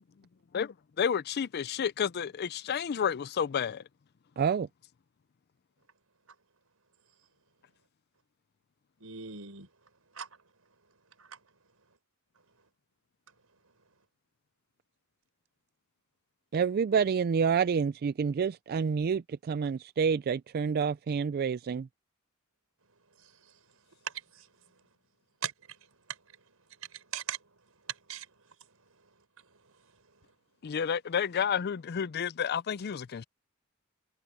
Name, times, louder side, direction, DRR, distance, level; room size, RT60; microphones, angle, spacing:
voice 1, 0.5-3.8 30.6-33.2, left 7 dB, 50° left, 0.4 m, -31 dB
voice 2, 4.4-4.7 16.5-21.9, right 6 dB, 45° right, 0.3 m, -28 dB
voice 3, 9.0-9.7 10.1-10.3 11.2-11.4 23.2-23.3 24.1-24.4 25.4-25.5 26.9-27.4 28.1-28.3, right 8 dB, 85° right, 5.3 m, -38 dB
head